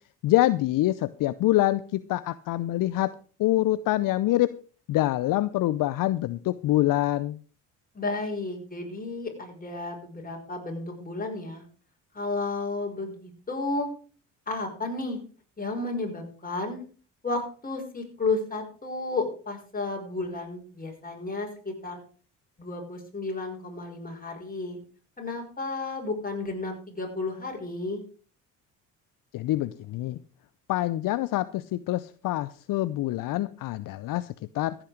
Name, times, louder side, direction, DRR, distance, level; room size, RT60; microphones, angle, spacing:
voice 1, 0.2-3.1 3.4-4.5 4.9-7.4 29.3-30.2 30.7-34.8, left 15 dB, 60° left, 16 dB, 0.7 m, -25 dB
voice 2, 7.9-11.6 12.1-13.9 14.5-15.2 15.6-16.8 17.2-22.0 22.6-24.8 25.2-28.0, left 3 dB, 25° left, 1 dB, 5.7 m, -32 dB
14.5 x 9.0 x 5.1 m, 0.40 s
hypercardioid pair, 60°, 37 cm